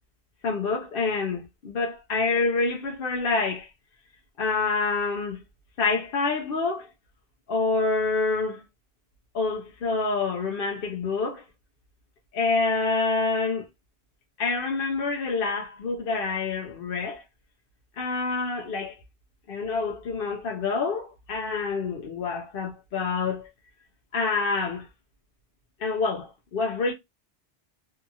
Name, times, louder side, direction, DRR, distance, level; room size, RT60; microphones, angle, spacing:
voice 1, 0.4-3.7 4.4-5.4 5.8-6.9 7.5-8.6 9.3-11.4 12.3-13.7 14.4-17.2 18.0-19.0 19.5-23.5 24.1-24.9 25.8-26.9, left 4 dB, 65° left, 0.7 m, -27 dB
2.7 x 2.4 x 2.6 m
omnidirectional pair, 1.1 m